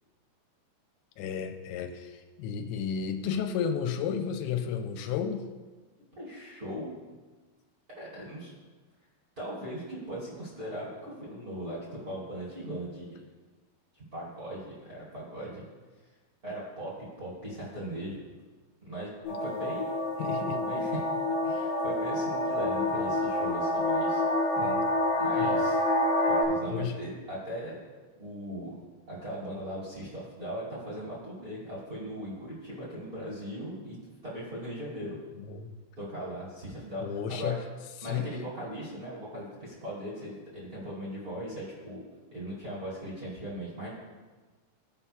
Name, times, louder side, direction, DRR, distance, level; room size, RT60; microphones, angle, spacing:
voice 1, 1.2-5.5 20.2-20.6 24.6-24.9 25.4-25.6 26.7-27.0 35.5-35.8 37.0-37.6 38.0-38.3, left 7 dB, 90° left, 5 dB, 2.9 m, -32 dB
voice 2, 6.2-6.9 8.0-8.5 9.4-13.2 13.9-15.6 16.4-16.9 17.2-18.2 18.8-19.1 19.4-19.9 20.4-21.1 21.4-24.2 25.2-25.8 26.3-27.8 28.2-28.8 29.1-34.0 34.2-35.2 36.0-37.5 38.0-42.0 42.3-43.9, right 1 dB, 30° right, -8 dB, 1.8 m, -39 dB
sound 1, 19.2-26.4, left 1 dB, 65° left, 2.6 m, -28 dB
16.5 x 5.6 x 2.3 m, 1.3 s
omnidirectional pair, 5.1 m